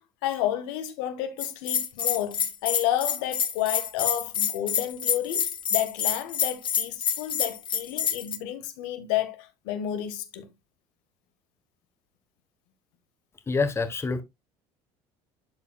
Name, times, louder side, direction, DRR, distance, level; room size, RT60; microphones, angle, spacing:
voice 1, 0.0-10.5, left 11 dB, 85° left, 1.4 m, -31 dB
Bell, 1.4-8.4, left 8 dB, 40° left, 1.3 m, -27 dB
voice 2, 13.5-14.2, left 4 dB, 20° left, 1.2 m, -26 dB
12.0 x 4.8 x 2.3 m
supercardioid pair, 105°, 13 cm